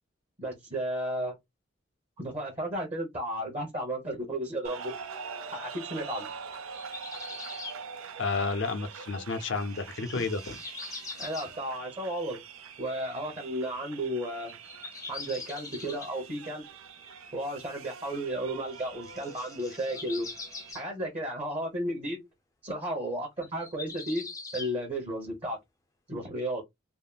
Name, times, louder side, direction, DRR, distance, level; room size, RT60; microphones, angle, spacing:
voice 1, 0.4-1.3 2.2-4.9 5.5-6.3 11.2-12.4 12.8-14.5 15.1-16.7 17.3-20.3 20.7-22.2 22.6-25.6 26.1-26.6, right 1 dB, 30° right, 1.0 m, -33 dB
sound 1, 4.6-20.7, right 6 dB, 90° right, 0.6 m, -44 dB
sound 2, 6.5-7.8 9.2-9.3 9.7-11.5 12.7-12.8 14.5-16.1 18.7-20.8 23.4-24.7, left 4 dB, 15° left, 0.5 m, -42 dB
voice 2, 8.2-10.6, left 4 dB, 60° left, 0.6 m, -31 dB
3.5 x 2.0 x 2.3 m
head